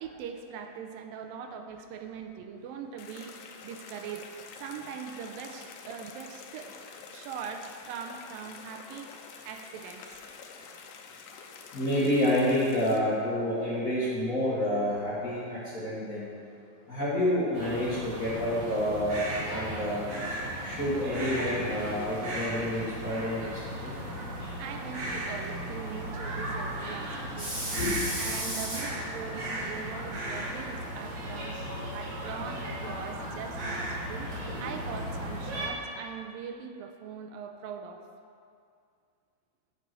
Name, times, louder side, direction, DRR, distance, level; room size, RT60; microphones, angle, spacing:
voice 1, 0.0-6.8 7.1-10.2 24.6-27.8 28.2-31.6 31.9-38.0, right 7 dB, 85° right, 5 dB, 2.3 m, -41 dB
sound 1, 3.0-13.0, left 5 dB, 75° left, 2.0 m, -47 dB
voice 2, 11.7-16.3 16.9-19.2 19.5-20.1 20.6-23.9 27.4-28.8, left 1 dB, 55° left, -8 dB, 0.9 m, -29 dB
sound 2, 17.5-35.7, right 1 dB, 50° right, 3.1 m, -36 dB
9.6 x 5.4 x 7.5 m, 2.4 s
omnidirectional pair, 4.1 m